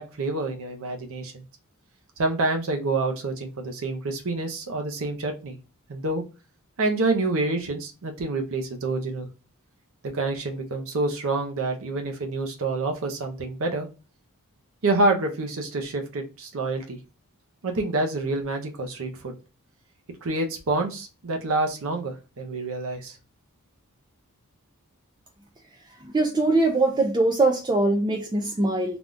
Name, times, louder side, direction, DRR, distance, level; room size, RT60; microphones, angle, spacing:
voice 1, 0.0-1.4 2.2-5.6 5.9-6.2 6.8-9.3 10.0-13.9 14.8-17.0 17.6-19.3 20.2-23.2, right 2 dB, 65° right, 0.6 m, -27 dB
voice 2, 26.1-29.0, right 2 dB, 20° right, 0.4 m, -22 dB
3.4 x 2.3 x 2.5 m
head